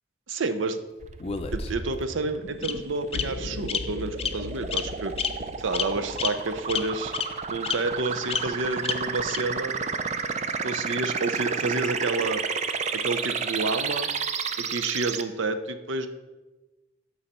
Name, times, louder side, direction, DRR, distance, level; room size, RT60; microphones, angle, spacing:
voice 1, 0.3-0.8 1.5-5.2 5.6-7.1 7.5-9.8 10.6-12.4 12.9-14.1 14.6-16.1, right 3 dB, 75° right, 9 dB, 0.6 m, -29 dB
sound 1, 1.0-15.2, right 5 dB, 35° right, 0.4 m, -32 dB
Bird vocalization bird call bird song, 1.2-2.0 2.6-2.7 3.1-3.2 3.7-3.8 4.2-4.3 4.7-4.8 5.2-5.3 5.7-5.9 6.2-6.3 6.7-6.8 7.1-7.2 7.6-7.7 8.3-8.4 8.8-8.9 9.3-9.4, left 7 dB, 30° left, 0.5 m, -28 dB
sound 2, 3.1-7.4, left 3 dB, 80° left, 0.6 m, -40 dB
13.0 x 4.8 x 4.3 m, 1.2 s
head